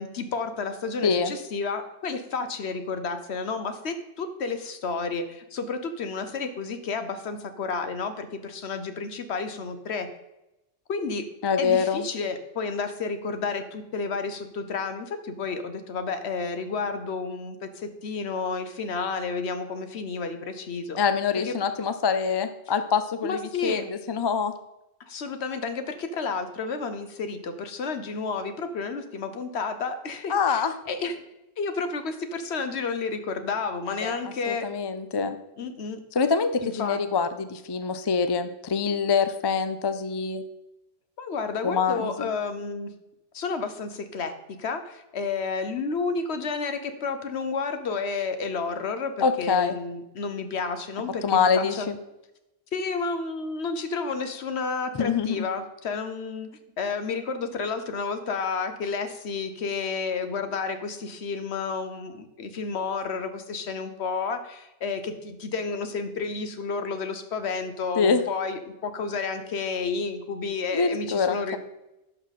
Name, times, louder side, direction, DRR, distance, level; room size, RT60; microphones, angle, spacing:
voice 1, 0.0-10.1 10.9-11.2 11.6-21.0 21.4-21.5 23.2-23.9 25.1-31.1 31.6-34.6 35.6-36.0 36.6-37.0 41.2-42.9 43.3-51.9 52.7-56.5 56.8-71.6, left 4 dB, 65° left, 9 dB, 1.2 m, -31 dB
voice 2, 11.4-12.1 21.0-24.5 30.3-30.7 33.9-34.2 34.5-35.4 36.1-40.4 41.6-42.3 49.2-49.8 51.2-52.0 54.9-55.4 68.0-68.2 70.7-71.6, left 5 dB, 35° left, 10 dB, 0.4 m, -25 dB
11.0 x 5.9 x 4.1 m, 0.93 s
omnidirectional pair, 1.2 m